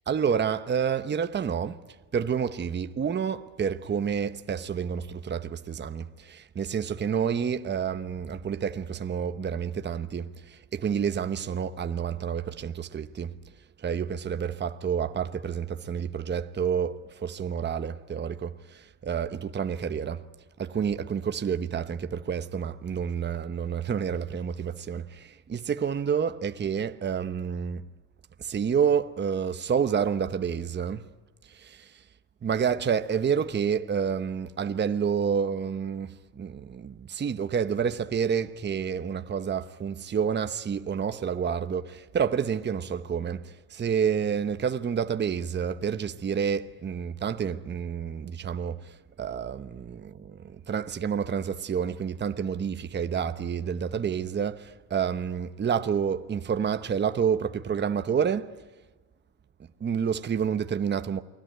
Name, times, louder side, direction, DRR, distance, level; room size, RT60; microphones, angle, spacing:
voice 1, 0.1-1.8 2.1-13.3 13.8-20.2 20.6-27.9 28.4-31.1 31.4-32.0 32.4-58.5 59.6-61.2, right 7 dB, 30° right, 1.0 m, -29 dB
29.0 x 21.0 x 9.2 m
cardioid pair, 120°, 37 cm